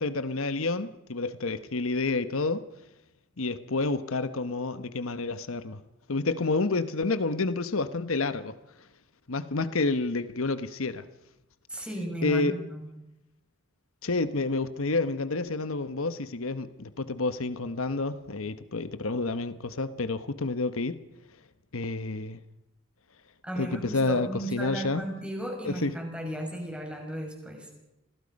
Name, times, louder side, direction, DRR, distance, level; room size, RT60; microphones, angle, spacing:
voice 1, 0.0-2.6 3.4-5.8 6.1-8.5 9.3-11.0 12.2-12.6 14.0-21.0 21.7-22.4 23.6-25.0 25.6-26.0, left 3 dB, 85° left, 12 dB, 1.1 m, -29 dB
voice 2, 11.7-12.9 23.4-27.7, right 1 dB, 5° right, 1 dB, 5.9 m, -35 dB
28.5 x 21.0 x 5.3 m, 0.93 s
head